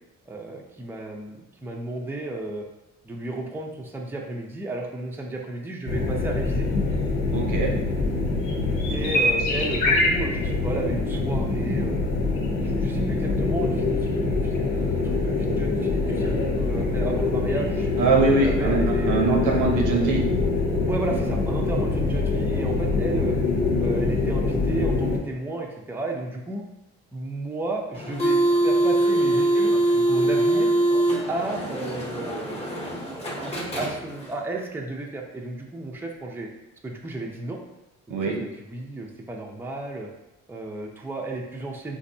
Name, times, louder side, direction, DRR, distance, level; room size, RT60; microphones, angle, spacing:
voice 1, 0.3-2.7 3.0-6.7 8.9-12.0 12.6-19.2 20.8-23.3 23.8-26.6 27.1-30.7 31.3-36.5 36.8-37.6 38.1-38.4 38.7-40.1 40.5-42.0, right 2 dB, 5° right, 0 dB, 0.5 m, -33 dB
sound 1, 5.9-25.2, left 3 dB, 80° left, 1.0 m, -24 dB
voice 2, 7.3-7.7 18.0-18.8 19.0-20.2 38.1-38.4, right 3 dB, 85° right, 0 dB, 0.9 m, -22 dB
sound 2, 27.9-34.4, right 1 dB, 20° left, 0.9 m, -23 dB
4.2 x 2.6 x 2.6 m, 0.96 s
cardioid pair, 90°, 30 cm